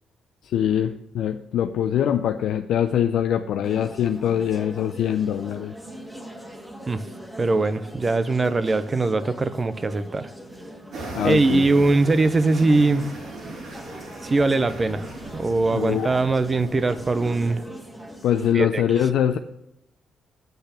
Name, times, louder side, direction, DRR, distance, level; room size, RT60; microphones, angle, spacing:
voice 1, 0.4-5.7 11.1-11.7 15.7-16.1 18.2-19.4, left 9 dB, 75° left, 0.5 m, -23 dB
sound 1, 3.6-18.5, right 1 dB, 10° right, 1.7 m, -41 dB
voice 2, 7.4-10.3 11.2-13.1 14.2-17.6 18.5-18.8, right 3 dB, 30° right, 0.7 m, -21 dB
sound 2, 10.9-17.6, right 2 dB, 65° right, 3.7 m, -39 dB
8.0 x 6.6 x 6.9 m
cardioid pair, 90°, 0 cm